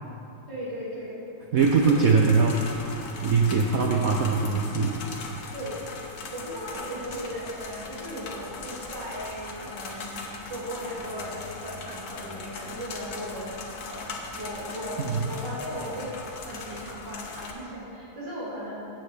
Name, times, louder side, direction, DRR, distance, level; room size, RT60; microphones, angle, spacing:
voice 1, 0.5-1.2 5.5-5.9 6.3-10.2 10.5-16.1 16.4-18.7, equal, 55° right, -8 dB, 3.0 m, -37 dB
voice 2, 1.5-5.0 15.0-15.2, right 4 dB, 75° right, 0 dB, 0.8 m, -22 dB
sound 1, 1.6-17.5, left 3 dB, 55° left, 1.2 m, -40 dB
15.5 x 7.5 x 3.4 m, 2.8 s
omnidirectional pair, 2.2 m